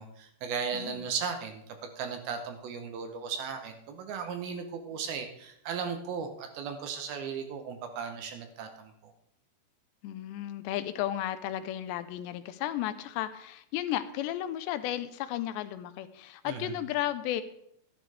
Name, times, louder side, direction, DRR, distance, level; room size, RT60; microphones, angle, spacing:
voice 1, 0.0-9.1 16.4-16.8, right 6 dB, 70° right, 6 dB, 2.6 m, -36 dB
voice 2, 0.7-1.1 10.0-17.4, left 12 dB, 85° left, 12 dB, 2.9 m, -34 dB
13.0 x 12.0 x 3.4 m, 0.75 s
omnidirectional pair, 4.9 m